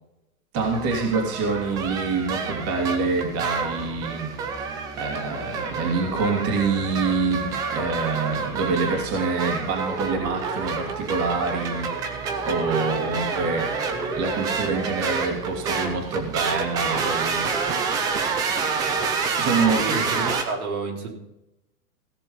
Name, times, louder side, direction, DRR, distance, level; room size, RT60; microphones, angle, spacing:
voice 1, 0.5-4.3 4.6-12.1 12.4-13.8 14.2-17.6 19.4-19.9, right 4 dB, 30° right, 1 dB, 2.9 m, -26 dB
sound 1, 0.6-20.4, right 5 dB, 10° right, 0.4 m, -28 dB
voice 2, 19.8-21.2, right 3 dB, 70° right, 0 dB, 4.0 m, -29 dB
16.5 x 6.9 x 5.5 m, 0.90 s
hypercardioid pair, 145°, 45 cm